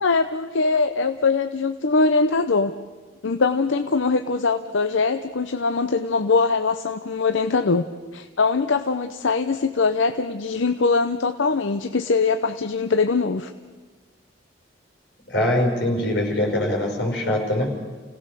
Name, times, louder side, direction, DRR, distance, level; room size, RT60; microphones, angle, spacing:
voice 1, 0.0-2.7 3.2-7.8 8.1-13.5, left 4 dB, 85° left, 8 dB, 0.7 m, -22 dB
voice 2, 15.3-17.7, left 1 dB, 65° left, 1 dB, 5.4 m, -23 dB
30.0 x 17.0 x 6.8 m, 1.4 s
head